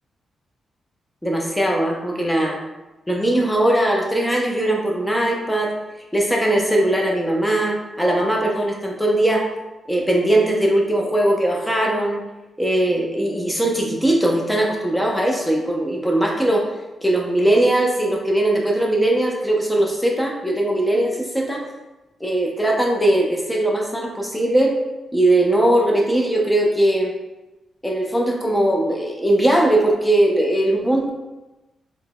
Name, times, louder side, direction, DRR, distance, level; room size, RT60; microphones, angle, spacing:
voice 1, 1.2-2.6 3.1-5.7 6.1-9.5 9.9-12.2 12.6-16.7 17.0-21.7 22.2-24.8 25.1-27.1 27.8-31.1, right 1 dB, 5° left, 0 dB, 0.6 m, -20 dB
3.8 x 2.1 x 2.3 m, 1.1 s
cardioid pair, 70°, 0 cm